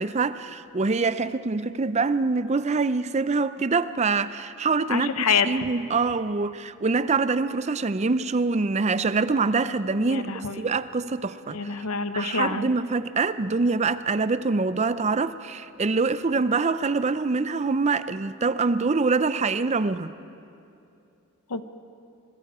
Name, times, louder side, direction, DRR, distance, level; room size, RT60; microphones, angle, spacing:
voice 1, 0.0-5.1 5.4-11.6 12.1-20.1, right 4 dB, 30° right, 0.5 m, -25 dB
voice 2, 4.9-5.7 10.0-10.6 11.5-12.7 21.5-21.6, left 5 dB, 90° left, 1.0 m, -26 dB
26.5 x 21.5 x 4.9 m
head